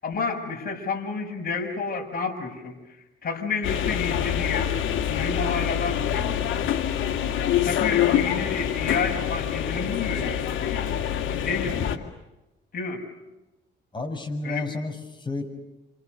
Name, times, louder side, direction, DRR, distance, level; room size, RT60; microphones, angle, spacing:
voice 1, 0.0-4.7 5.1-6.5 7.6-11.0 11.2-12.1 12.7-13.0 14.4-14.7, left 5 dB, 50° left, 2 dB, 7.1 m, -30 dB
sound 1, 3.6-12.0, left 10 dB, 80° left, 2.4 m, -26 dB
voice 2, 13.9-15.4, left 2 dB, 25° left, 5 dB, 6.4 m, -31 dB
29.0 x 27.5 x 6.8 m, 1.0 s
cardioid pair, 90°, 20 cm